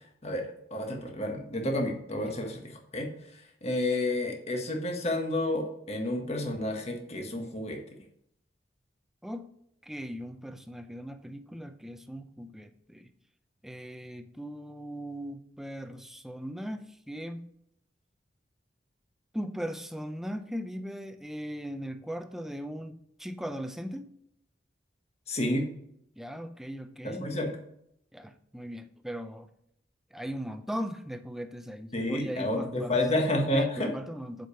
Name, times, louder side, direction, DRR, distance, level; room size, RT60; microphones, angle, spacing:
voice 1, 0.2-3.1 3.6-7.8 25.3-25.6 27.0-27.5 31.9-33.9, left 1 dB, 35° left, 3 dB, 1.5 m, -30 dB
voice 2, 9.8-13.1 13.6-17.5 19.3-24.1 26.2-27.3 28.1-29.5 30.1-33.0 33.5-34.5, equal, ahead, 8 dB, 0.6 m, -38 dB
7.5 x 5.2 x 6.9 m, 0.74 s
head